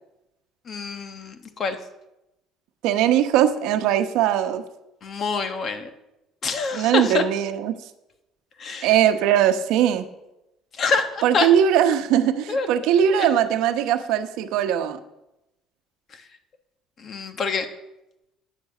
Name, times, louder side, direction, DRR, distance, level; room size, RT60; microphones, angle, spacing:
voice 1, 0.7-1.8 5.0-5.9 6.4-7.2 8.6-8.9 10.8-11.5 12.5-12.7 13.2-13.3 17.0-17.7, left 4 dB, 35° left, 8 dB, 1.2 m, -26 dB
voice 2, 2.8-4.6 6.7-7.7 8.8-10.0 11.2-15.0, right 10 dB, 70° right, 9 dB, 1.0 m, -20 dB
9.9 x 9.1 x 7.6 m, 0.93 s
cardioid pair, 150°, 0 cm